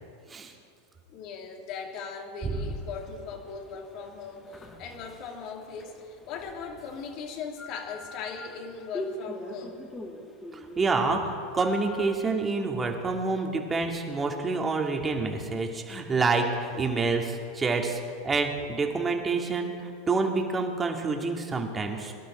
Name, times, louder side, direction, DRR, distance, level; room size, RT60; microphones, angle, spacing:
voice 1, 1.1-9.8, left 5 dB, 50° left, 2 dB, 2.7 m, -39 dB
sound 1, 2.6-12.2, left 1 dB, 15° left, 2.3 m, -43 dB
voice 2, 10.5-22.1, right 3 dB, 20° right, 2 dB, 2.2 m, -28 dB
22.0 x 12.0 x 4.4 m, 2.2 s
hypercardioid pair, 95°, 0 cm